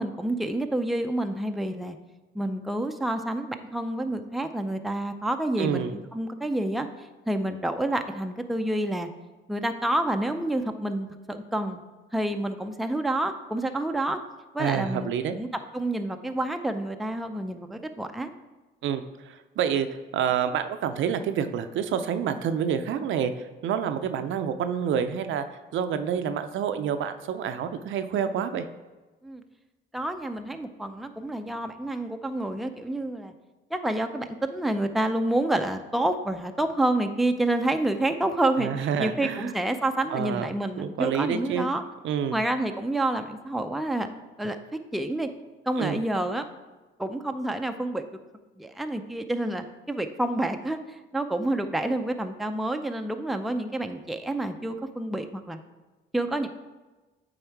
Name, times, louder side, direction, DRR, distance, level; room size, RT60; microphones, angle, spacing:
voice 1, 0.0-2.0 2.3-6.9 7.3-9.1 9.5-11.8 12.1-14.2 14.5-15.5 15.7-18.3 29.2-29.4 29.9-33.3 33.7-41.8 42.3-44.1 44.4-45.3 45.7-46.4 47.0-48.0 48.6-55.6 56.1-56.5, right 1 dB, ahead, 6 dB, 0.5 m, -28 dB
voice 2, 5.6-5.9 14.6-15.4 18.8-19.9 20.1-23.3 23.6-25.4 25.7-28.6 38.6-39.5 40.1-40.5 40.8-41.7 42.0-42.4 45.8-46.0, right 8 dB, 75° right, 9 dB, 0.5 m, -28 dB
8.9 x 3.5 x 4.6 m, 1.2 s
cardioid pair, 90°, 20 cm